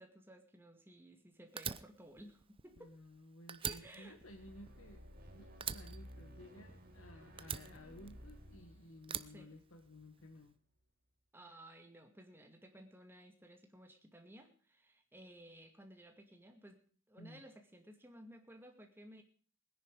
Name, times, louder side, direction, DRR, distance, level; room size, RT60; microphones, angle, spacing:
voice 1, 0.0-2.9 3.6-4.2 9.3-9.5 11.3-16.8 17.1-19.2, right 1 dB, 10° right, 4 dB, 2.3 m, -56 dB
Fire, 1.6-3.2 3.5-5.2 5.6-6.9 7.4-8.5 9.0-10.2, right 8 dB, 25° right, 0.6 m, -44 dB
voice 2, 2.8-5.1 5.3-10.6 17.2-17.4, left 1 dB, 75° left, 5 dB, 1.4 m, -56 dB
sound 1, 4.0-10.3, equal, 45° right, 4.2 m, -56 dB
20.0 x 10.5 x 4.8 m, 0.42 s
head